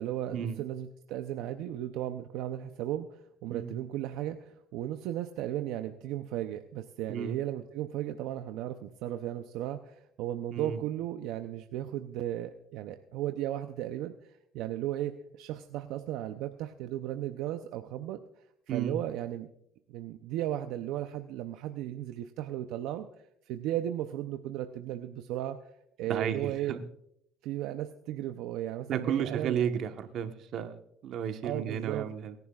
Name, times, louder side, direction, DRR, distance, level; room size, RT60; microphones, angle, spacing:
voice 1, 0.0-18.2 18.7-19.5 19.9-23.1 23.5-25.6 26.0-26.8 27.4-29.6 31.4-32.1, right 12 dB, 85° right, 8 dB, 0.6 m, -35 dB
voice 2, 26.1-26.8 28.9-32.3, right 8 dB, 65° right, 7 dB, 1.2 m, -33 dB
23.0 x 10.5 x 2.4 m, 0.73 s
cardioid pair, 95°, 0 cm